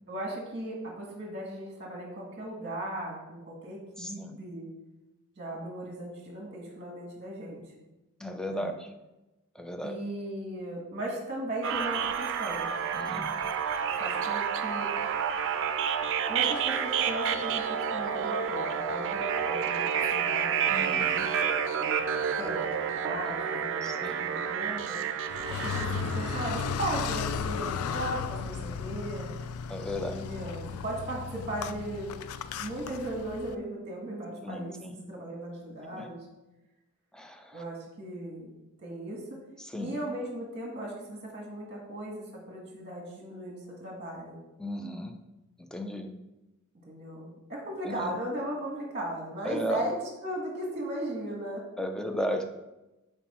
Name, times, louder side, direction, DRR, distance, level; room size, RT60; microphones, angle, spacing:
voice 1, 0.1-4.7 5.4-7.7 8.4-8.7 9.8-12.7 14.0-14.9 16.3-21.1 21.8-22.0 22.4-25.0 25.5-29.3 30.0-32.1 32.6-36.3 37.5-38.5 38.8-39.4 39.8-44.4 46.9-51.7, right 1 dB, 30° right, -1 dB, 1.4 m, -37 dB
voice 2, 8.2-8.9 9.6-10.0 12.9-13.3 20.7-21.3 23.8-24.2 29.7-30.2 34.4-34.9 37.1-37.4 39.7-39.9 44.6-45.1 45.7-46.1 47.9-48.0 49.5-49.8 51.8-52.4, equal, 5° left, 5 dB, 0.4 m, -34 dB
sound 1, 11.6-26.6, right 7 dB, 60° right, 0.5 m, -29 dB
Car, 25.3-33.6, left 6 dB, 75° left, 0.3 m, -35 dB
5.8 x 4.5 x 4.1 m, 1.0 s
head